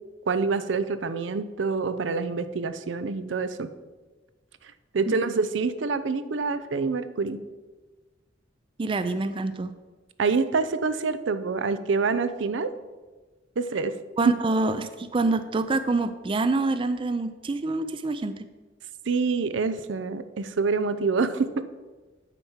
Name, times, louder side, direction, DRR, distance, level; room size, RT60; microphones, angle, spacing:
voice 1, 0.3-3.7 4.9-7.4 10.2-12.7 13.6-13.9 14.3-14.4 19.1-21.6, right 4 dB, 80° right, 12 dB, 0.5 m, -26 dB
voice 2, 8.8-9.7 14.2-18.4, right 3 dB, 30° right, 11 dB, 0.4 m, -26 dB
9.0 x 4.3 x 7.2 m, 1.3 s
head